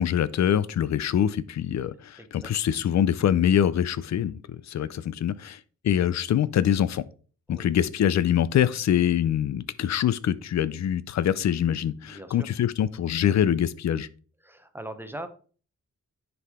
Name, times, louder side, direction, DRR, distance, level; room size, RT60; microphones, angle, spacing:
voice 1, 0.0-7.0 7.5-14.1, left 10 dB, 60° left, 0.5 m, -24 dB
voice 2, 2.2-2.5 4.7-4.9 7.5-7.7 12.0-12.5 14.4-15.3, right 1 dB, 5° right, 0.7 m, -40 dB
9.9 x 4.7 x 3.6 m
wide cardioid pair, 150°, 31 cm